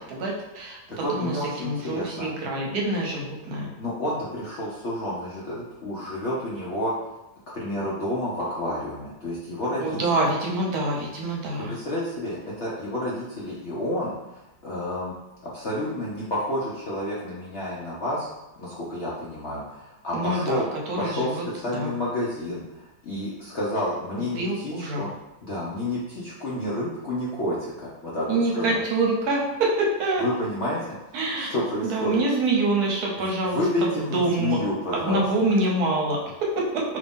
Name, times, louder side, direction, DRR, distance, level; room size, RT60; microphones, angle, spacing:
voice 1, 0.1-0.8 1.1-3.7 9.8-11.7 20.1-21.9 24.3-25.1 28.3-30.2 31.1-31.5 31.8-34.6 34.9-36.8, right 2 dB, 70° right, -2 dB, 1.1 m, -26 dB
voice 2, 0.9-2.3 3.8-6.9 7.5-10.0 11.7-15.1 15.5-18.3 18.6-20.6 21.0-21.4 21.6-25.1 25.4-28.3 28.5-28.8 30.2-30.9 31.4-32.2 33.2-35.2, left 1 dB, 60° left, -6 dB, 0.7 m, -30 dB
2.9 x 2.6 x 3.4 m, 0.96 s
omnidirectional pair, 1.8 m